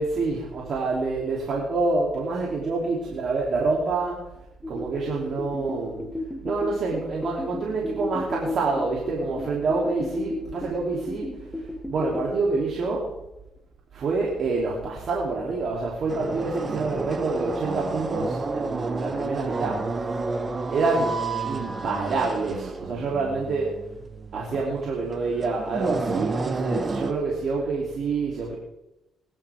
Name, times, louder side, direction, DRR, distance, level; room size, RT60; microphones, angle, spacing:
voice 1, 0.0-4.2 4.6-6.0 6.4-11.3 11.9-13.1 13.9-19.8 20.7-21.1 21.4-23.8 24.3-28.6, right 3 dB, 60° right, -3 dB, 2.8 m, -27 dB
sound 1, 4.6-12.4, left 1 dB, 5° left, 1.5 m, -34 dB
sound 2, 16.1-27.1, right 3 dB, 35° right, 1.3 m, -30 dB
20.5 x 11.0 x 3.5 m, 0.93 s
cardioid pair, 90°, 0 cm